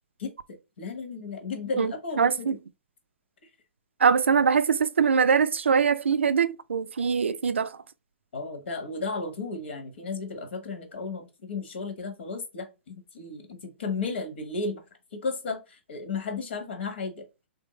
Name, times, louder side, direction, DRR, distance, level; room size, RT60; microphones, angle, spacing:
voice 1, 0.8-2.6 8.3-14.8 15.1-17.3, left 4 dB, 70° left, 1.3 m, -34 dB
voice 2, 2.2-2.5 4.0-7.7, right 6 dB, 85° right, 0.3 m, -22 dB
3.3 x 2.7 x 3.0 m
hypercardioid pair, 125°, 6 cm